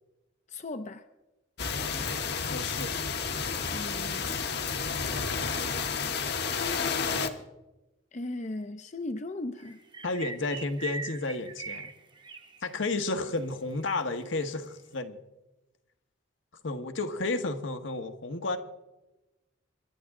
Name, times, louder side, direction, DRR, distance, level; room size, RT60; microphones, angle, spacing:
voice 1, 0.5-1.0 3.7-4.4 6.5-7.4 8.1-9.8, left 2 dB, 35° left, 8 dB, 0.6 m, -37 dB
sound 1, 1.6-7.3, left 5 dB, 55° left, 1.1 m, -31 dB
voice 2, 2.5-2.9 10.0-11.9 12.6-15.2 16.6-18.6, left 2 dB, 75° left, 7 dB, 1.3 m, -32 dB
sound 2, 9.6-13.0 13.3-13.4 13.8-13.9, right 3 dB, 25° right, 0.9 m, -41 dB
26.5 x 11.5 x 3.7 m, 1.0 s
head